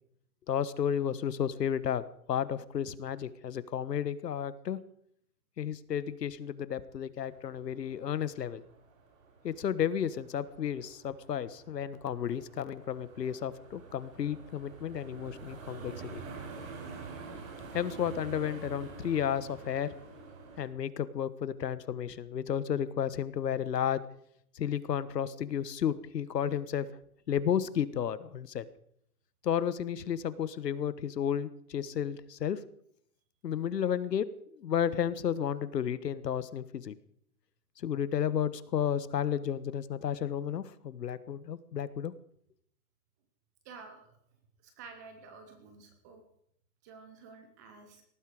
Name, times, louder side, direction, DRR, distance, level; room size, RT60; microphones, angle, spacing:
voice 1, 0.5-4.8 5.6-8.6 9.4-16.2 17.7-19.9 20.6-24.0 24.5-26.9 27.3-28.6 29.4-32.6 33.4-36.9 37.8-42.1, left 9 dB, 85° left, 16 dB, 1.5 m, -32 dB
sound 1, 7.2-20.7, right 4 dB, 55° right, 5.2 m, -47 dB
voice 2, 43.6-44.0 44.6-46.2 46.8-48.0, right 4 dB, 10° right, 7 dB, 0.8 m, -50 dB
19.0 x 14.0 x 4.9 m, 0.69 s
hypercardioid pair, 170°, 47 cm